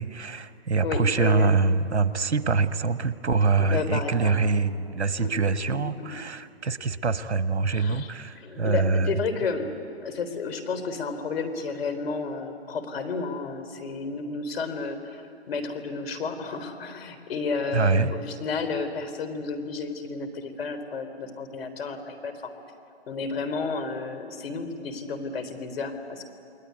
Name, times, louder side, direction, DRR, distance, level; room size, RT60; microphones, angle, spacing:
voice 1, 0.0-9.1 17.7-18.1, right 4 dB, 80° right, 11 dB, 1.4 m, -24 dB
voice 2, 0.8-1.5 3.6-4.3 5.2-5.3 5.7-6.1 7.7-9.7 10.0-22.3 23.1-26.2, left 4 dB, 60° left, 8 dB, 3.9 m, -32 dB
29.0 x 21.5 x 9.6 m, 2.6 s
hypercardioid pair, 130°, 33 cm